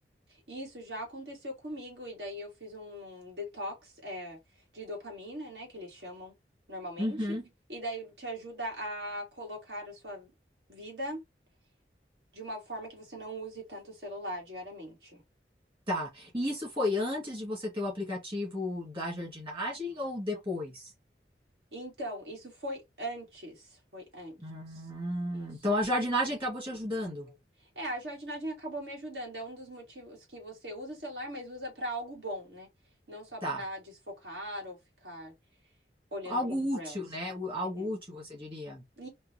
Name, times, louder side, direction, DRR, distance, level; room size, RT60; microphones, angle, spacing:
voice 1, 0.5-4.4 4.7-6.3 6.7-7.4 7.7-10.3 10.7-11.2 12.3-15.2 20.3-20.4 21.7-24.4 25.3-25.5 27.2-27.3 27.8-32.7 33.1-35.3 36.1-37.0 37.8-37.9 39.0-39.1, equal, 75° right, 2.1 m, -40 dB
voice 2, 7.0-7.4 15.9-20.9 24.4-27.3 33.4-33.6 36.3-38.8, left 1 dB, 30° right, 2.2 m, -33 dB
4.5 x 2.6 x 2.9 m
head